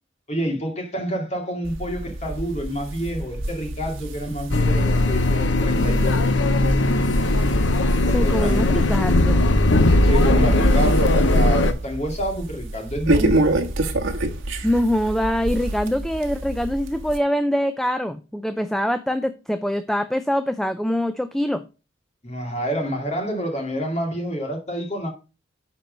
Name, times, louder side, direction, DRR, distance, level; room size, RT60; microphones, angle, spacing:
voice 1, 0.3-6.2 8.0-8.7 9.7-13.4 22.2-25.1, right 1 dB, 35° left, 2.4 m, -28 dB
sound 1, 1.6-17.2, right 1 dB, 75° right, 1.3 m, -28 dB
sound 2, 4.5-11.7, left 2 dB, 65° left, 0.8 m, -18 dB
voice 2, 8.1-9.5 14.6-21.6, equal, ahead, 0.4 m, -24 dB
10.5 x 4.5 x 5.2 m
head